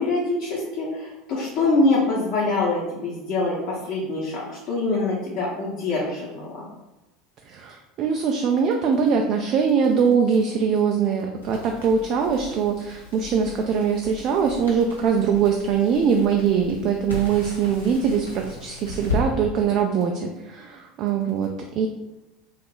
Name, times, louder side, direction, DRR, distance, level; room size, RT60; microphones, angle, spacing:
voice 1, 0.0-6.6, left 2 dB, 45° left, -7 dB, 0.9 m, -24 dB
voice 2, 7.5-21.9, right 6 dB, 45° right, 2 dB, 0.3 m, -22 dB
Crackle, 11.4-19.2, left 3 dB, 80° left, 0.9 m, -36 dB
2.7 x 2.4 x 3.8 m, 1.0 s
figure-of-eight pair, 70°, 0 cm